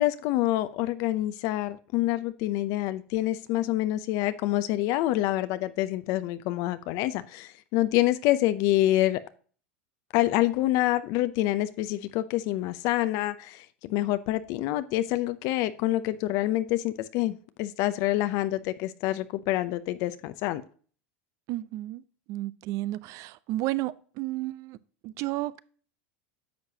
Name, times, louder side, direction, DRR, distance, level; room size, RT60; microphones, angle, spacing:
voice 1, 0.0-9.2 10.1-20.6, left 15 dB, 55° left, 0.6 m, -27 dB
voice 2, 21.5-22.0 22.3-24.8 25.0-25.6, right 17 dB, 55° right, 0.5 m, -32 dB
10.0 x 6.7 x 2.8 m
supercardioid pair, 110°, 7 cm